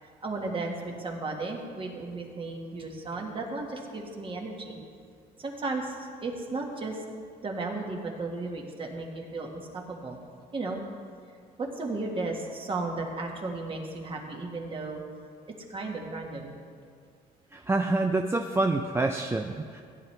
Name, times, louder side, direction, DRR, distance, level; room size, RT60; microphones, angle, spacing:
voice 1, 0.0-4.8 5.4-7.0 7.4-10.2 10.5-10.8 11.6-15.0 15.5-16.5, right 3 dB, 30° right, 1 dB, 1.7 m, -35 dB
voice 2, 17.5-19.8, right 2 dB, 15° right, 4 dB, 0.4 m, -27 dB
16.0 x 9.8 x 3.3 m, 2.2 s
cardioid pair, 110°, 17 cm